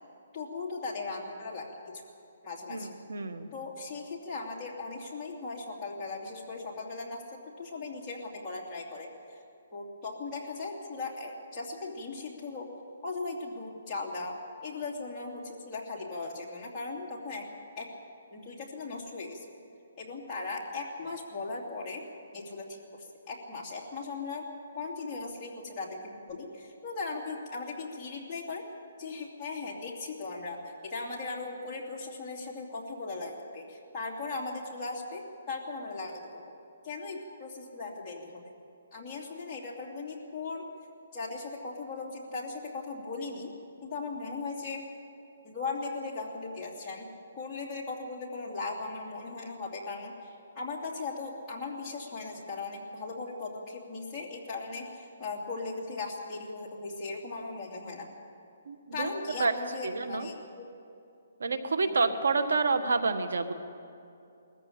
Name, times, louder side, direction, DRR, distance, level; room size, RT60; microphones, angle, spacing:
voice 1, 0.3-2.0 2.4-2.9 3.5-7.2 7.6-9.4 9.7-12.7 13.0-14.4 14.6-17.5 17.8-17.9 18.3-19.5 20.0-22.0 22.3-24.5 24.7-28.6 29.0-36.4 36.8-38.4 38.9-40.6 41.1-43.5 43.8-44.8 45.4-47.1 47.3-58.1 58.9-60.7 61.9-62.0, left 3 dB, 10° left, -7 dB, 2.7 m, -38 dB
voice 2, 2.7-3.5 58.7-59.1 59.4-59.5 59.8-60.3 61.4-63.5, right 4 dB, 85° right, 9 dB, 1.5 m, -28 dB
21.0 x 14.5 x 8.7 m, 2.7 s
hypercardioid pair, 175°, 0 cm